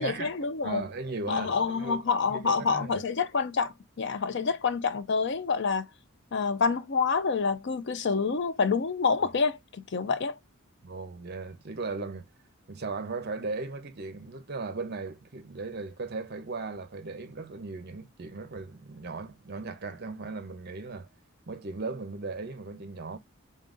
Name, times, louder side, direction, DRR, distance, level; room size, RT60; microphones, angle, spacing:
voice 1, 0.0-0.8 1.3-5.9 6.3-9.6 9.9-10.3, left 5 dB, 55° left, 0.5 m, -27 dB
voice 2, 0.6-2.0 2.3-3.0 10.8-12.3 12.7-21.1 21.5-23.2, right 3 dB, 50° right, 0.7 m, -37 dB
3.8 x 3.7 x 2.5 m
head